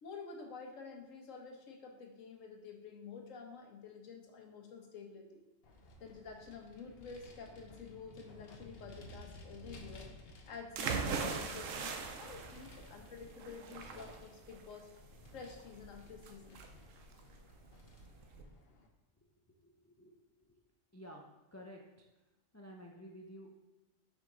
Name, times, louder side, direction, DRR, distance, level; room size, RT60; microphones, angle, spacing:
voice 1, 0.0-5.4 6.0-10.1 10.5-14.9 15.3-16.6, left 5 dB, 90° left, 2 dB, 1.4 m, -49 dB
Vehicle, 5.6-18.9, left 1 dB, 55° left, 1.0 m, -56 dB
sound 1, 10.7-18.4, right 5 dB, 90° right, 1.1 m, -41 dB
voice 2, 19.3-20.2 20.4-20.6 20.9-21.2 21.5-21.8 22.5-23.5, equal, 20° left, 0 dB, 0.4 m, -52 dB
6.3 x 5.1 x 3.8 m, 1.1 s
omnidirectional pair, 1.3 m